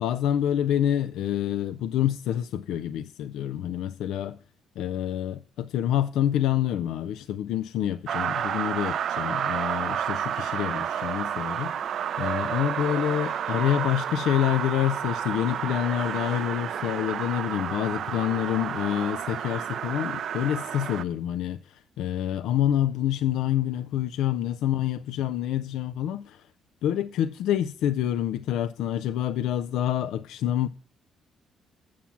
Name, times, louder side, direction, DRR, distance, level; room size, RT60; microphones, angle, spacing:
voice 1, 0.0-4.4 4.8-26.5 26.8-30.7, left 11 dB, 85° left, 0.3 m, -27 dB
sound 1, 8.1-21.0, right 9 dB, 65° right, 0.4 m, -30 dB
7.3 x 7.1 x 5.8 m
cardioid pair, 90°, 0 cm